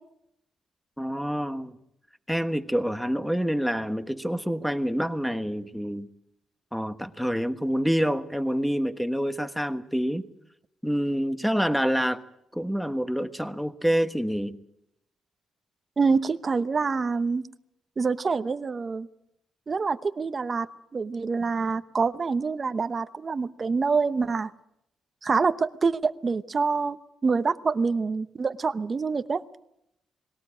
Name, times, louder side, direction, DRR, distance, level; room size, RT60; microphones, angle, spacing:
voice 1, 1.0-1.8 2.3-6.1 6.7-10.2 10.8-12.2 12.5-14.6, equal, ahead, 10 dB, 1.3 m, -27 dB
voice 2, 16.0-17.4 18.0-19.1 19.7-20.7 20.9-24.5 25.2-27.0 27.2-29.4, right 4 dB, 35° right, 11 dB, 0.9 m, -26 dB
21.0 x 18.0 x 8.7 m, 0.79 s
cardioid pair, 105°, 0 cm